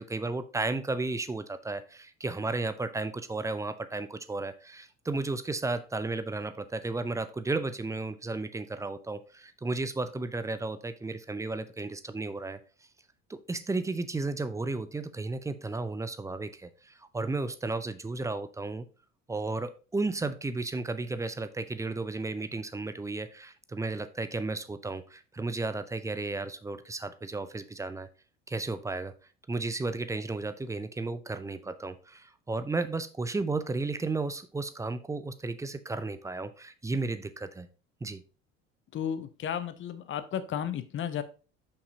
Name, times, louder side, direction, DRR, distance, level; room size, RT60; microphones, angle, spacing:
voice 1, 0.0-12.6 13.3-18.9 19.3-28.1 28.5-29.1 29.5-37.7 38.0-38.2, right 3 dB, 10° right, 11 dB, 0.4 m, -33 dB
voice 2, 38.9-41.2, left 9 dB, 30° left, 13 dB, 0.7 m, -33 dB
6.6 x 5.6 x 2.7 m, 0.35 s
figure-of-eight pair, 65°, 38 cm